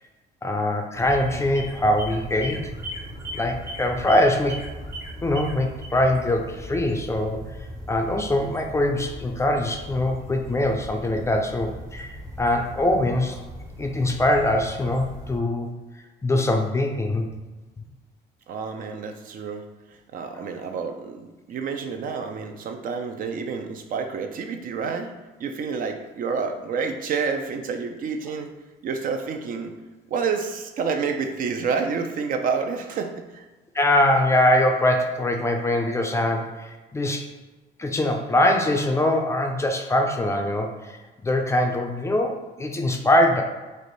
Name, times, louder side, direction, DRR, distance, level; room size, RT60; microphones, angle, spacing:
voice 1, 0.4-2.7 3.3-4.6 5.2-7.5 7.9-13.4 13.8-15.7 16.2-17.3 33.7-37.3 37.8-41.0 41.2-43.4, left 1 dB, 15° left, 3 dB, 0.4 m, -23 dB
sound 1, 0.9-15.4, equal, 20° right, 0.7 m, -38 dB
voice 2, 18.5-19.7 20.1-25.1 25.4-28.5 28.8-29.8 30.1-33.5, right 5 dB, 55° right, 5 dB, 0.5 m, -29 dB
3.4 x 2.6 x 3.9 m, 1.2 s
cardioid pair, 110°, 17 cm